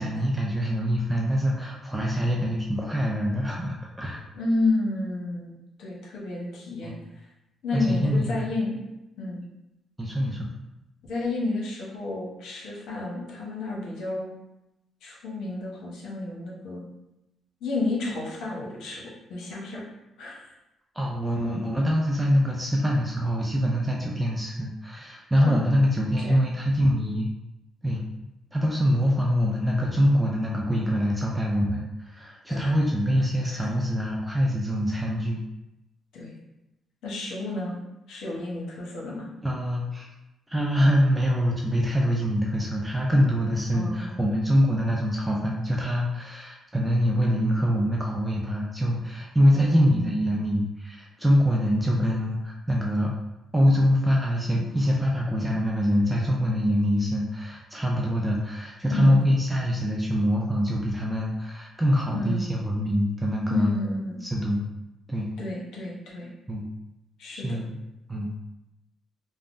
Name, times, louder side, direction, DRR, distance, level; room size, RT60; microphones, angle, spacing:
voice 1, 0.0-4.2 6.8-7.0 7.7-8.5 10.0-10.5 20.9-27.3 27.8-28.0 28.5-35.4 39.4-40.1 40.5-53.1 53.5-63.7 64.2-64.6 65.1-65.3 66.5-66.7 67.3-67.8 68.1-68.3, equal, 10° right, -2 dB, 0.4 m, -24 dB
voice 2, 4.3-7.0 7.6-8.8 9.2-9.4 11.0-14.3 15.0-16.8 17.6-19.9 20.2-20.5 25.4-25.6 26.2-26.4 32.5-32.8 33.4-33.7 36.1-36.4 37.0-39.3 43.7-44.3 49.5-50.1 58.9-59.2 62.1-62.4 63.5-64.2 65.4-66.3 67.2-67.6, left 2 dB, 80° left, -3 dB, 0.8 m, -31 dB
3.3 x 2.0 x 2.5 m, 0.93 s
cardioid pair, 90°, 0 cm